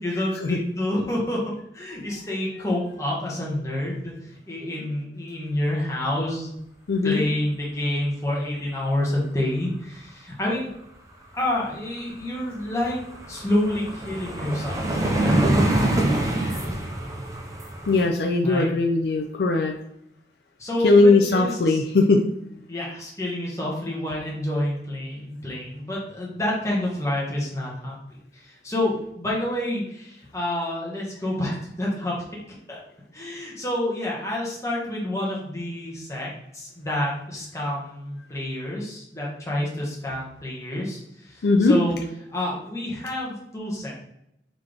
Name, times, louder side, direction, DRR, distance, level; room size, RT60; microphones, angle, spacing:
voice 1, 0.0-4.1 4.5-6.6 7.0-10.7 11.3-13.0 13.3-15.7 18.4-18.7 20.6-21.8 22.7-28.0 28.3-32.1 32.7-32.8 33.1-42.0 42.3-43.9, left 1 dB, 15° left, -4 dB, 1.2 m, -28 dB
voice 2, 6.9-7.2 16.4-16.6 17.9-19.7 20.8-22.2 41.4-41.8, left 3 dB, 65° left, 3 dB, 0.4 m, -19 dB
sound 1, 12.0-12.1 12.4-18.1, right 1 dB, 20° right, 0.5 m, -25 dB
3.9 x 3.3 x 3.3 m, 0.78 s
head